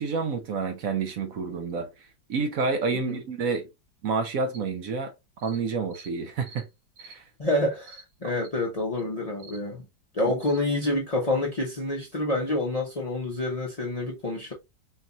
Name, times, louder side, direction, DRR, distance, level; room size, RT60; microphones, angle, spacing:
voice 1, 0.0-3.7 4.0-5.1 5.4-6.7 7.0-7.2, right 4 dB, 65° right, 0.8 m, -29 dB
sound 1, 4.5-4.6 5.4-5.6 5.9-6.1 6.4-6.7 7.0-7.2 7.8-8.1 8.4-8.5 9.0-9.1 9.4-9.6 10.4-10.6, right 3 dB, 85° right, 2.3 m, -48 dB
voice 2, 7.4-9.9 10.1-14.5, left 1 dB, 65° left, 0.3 m, -28 dB
4.4 x 2.6 x 2.9 m
omnidirectional pair, 2.1 m